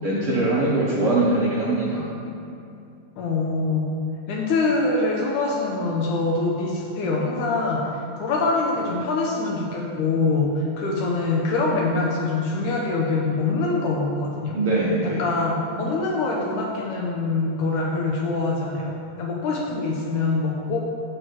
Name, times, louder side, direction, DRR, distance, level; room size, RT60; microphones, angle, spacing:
voice 1, 0.0-2.1 14.5-15.2, right 2 dB, 70° right, -7 dB, 1.3 m, -22 dB
voice 2, 3.2-3.9 4.3-7.8 8.2-14.6 15.2-20.8, left 3 dB, 75° left, -2 dB, 2.0 m, -24 dB
8.4 x 6.3 x 4.5 m, 2.6 s
omnidirectional pair, 4.1 m